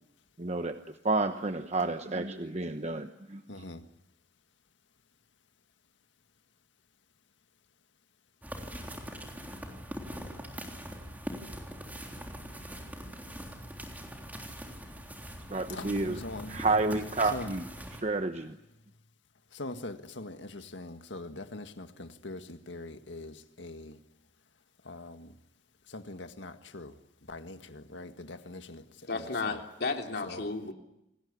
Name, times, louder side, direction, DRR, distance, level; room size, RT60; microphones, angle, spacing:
voice 1, 0.4-0.8 1.0-3.4 15.5-16.2 16.5-17.7 18.0-18.5, right 3 dB, 35° right, 8 dB, 1.1 m, -30 dB
voice 2, 3.5-3.8 15.7-16.7 17.3-17.5 19.5-24.0 24.9-25.3 25.9-26.9 27.3-28.8 29.4-29.6 30.2-30.5, left 2 dB, 85° left, 9 dB, 1.9 m, -42 dB
sound 1, 8.4-18.0, equal, 10° right, 3.5 m, -42 dB
voice 3, 29.1-30.7, left 3 dB, 60° left, 3 dB, 3.0 m, -33 dB
28.0 x 20.0 x 8.5 m, 0.86 s
head